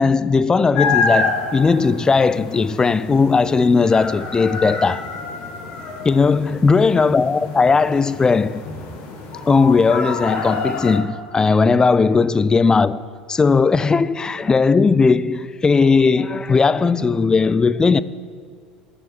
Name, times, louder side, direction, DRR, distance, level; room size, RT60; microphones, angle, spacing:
voice 1, 0.0-5.1 6.0-8.6 9.4-18.0, left 4 dB, 15° left, 0.4 m, -17 dB
sound 1, 0.7-11.0, left 4 dB, 50° left, 1.9 m, -27 dB
11.0 x 6.9 x 8.2 m
figure-of-eight pair, 70°, 4 cm